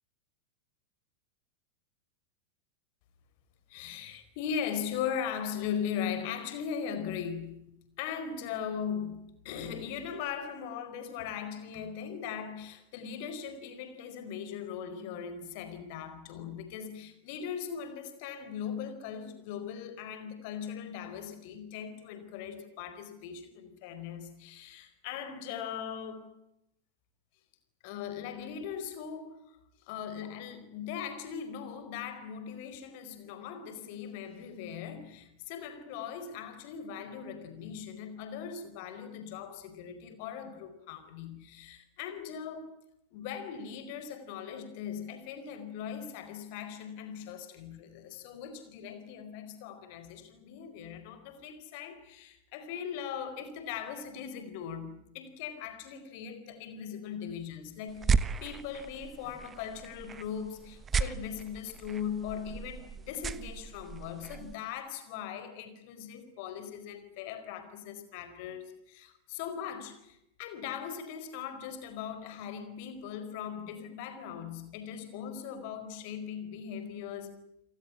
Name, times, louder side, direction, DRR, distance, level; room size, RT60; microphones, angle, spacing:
voice 1, 3.7-26.4 27.8-29.6 29.8-42.8 43.1-58.1 58.4-77.4, left 8 dB, 45° left, 4.6 m, -39 dB
sound 1, 57.9-64.5, right 5 dB, 20° right, 1.1 m, -35 dB
30.0 x 19.0 x 9.8 m
figure-of-eight pair, 90°, 0 cm